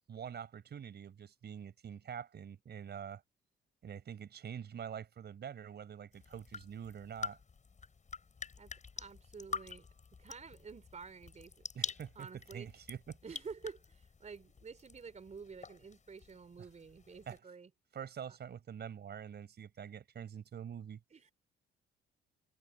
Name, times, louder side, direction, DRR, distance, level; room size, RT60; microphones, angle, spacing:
voice 1, 0.1-3.2 3.8-7.4 11.7-12.3 12.5-13.2 17.3-17.4 17.9-21.0, right 8 dB, 55° right, 4.8 m, -45 dB
sound 1, 6.1-17.4, left 5 dB, 35° left, 7.1 m, -47 dB
voice 2, 8.5-9.9 10.2-12.7 13.2-17.7 18.3-18.4 21.1-21.3, right 5 dB, 35° right, 4.0 m, -50 dB
cardioid pair, 90°, 20 cm